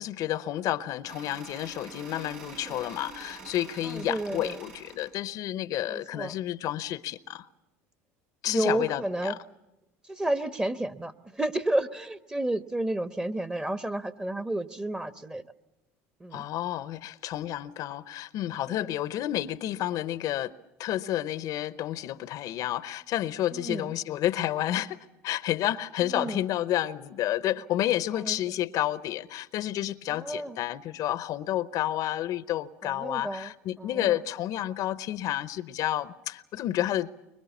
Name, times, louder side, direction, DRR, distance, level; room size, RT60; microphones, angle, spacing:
voice 1, 0.0-7.5 8.4-9.4 16.3-20.5 20.8-37.1, left 13 dB, 55° left, 0.8 m, -30 dB
sound 1, 1.0-5.1, right 4 dB, 80° right, 5.2 m, -46 dB
voice 2, 3.9-4.6 5.9-6.3 8.5-9.4 10.1-15.4 16.2-16.4 18.7-18.9 23.5-23.9 26.0-26.4 28.1-28.4 30.1-30.6 32.8-33.5 33.8-34.2, right 1 dB, 10° right, 1.1 m, -31 dB
25.0 x 22.5 x 7.2 m
hypercardioid pair, 85°, 7 cm